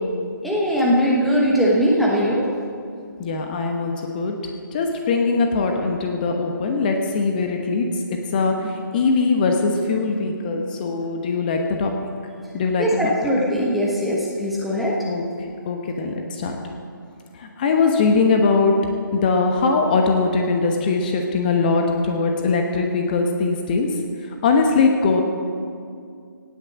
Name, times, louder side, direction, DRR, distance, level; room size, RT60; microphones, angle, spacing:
voice 1, 0.4-2.5 12.8-15.0, equal, ahead, -6 dB, 1.1 m, -20 dB
voice 2, 3.2-4.3 4.7-11.9 12.5-13.1 15.1-15.3 15.6-16.6 17.4-18.7 19.1-23.9 24.4-25.2, left 4 dB, 25° left, 3 dB, 1.1 m, -21 dB
17.5 x 6.6 x 7.4 m, 2.3 s
figure-of-eight pair, 160°, 11 cm